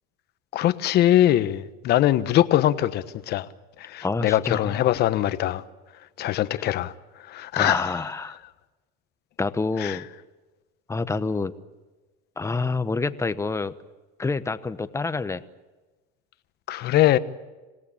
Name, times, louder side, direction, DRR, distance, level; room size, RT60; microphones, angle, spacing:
voice 1, 0.5-3.5 3.8-5.6 6.2-6.9 7.3-7.9 9.8-10.0 16.7-17.2, left 13 dB, 50° left, 1.3 m, -22 dB
voice 2, 4.0-4.9 6.6-6.7 7.6-8.4 9.4-10.0 10.9-11.5 12.4-13.7 14.2-15.4, left 3 dB, 15° left, 1.0 m, -27 dB
27.5 x 17.5 x 8.7 m
supercardioid pair, 115°, 21 cm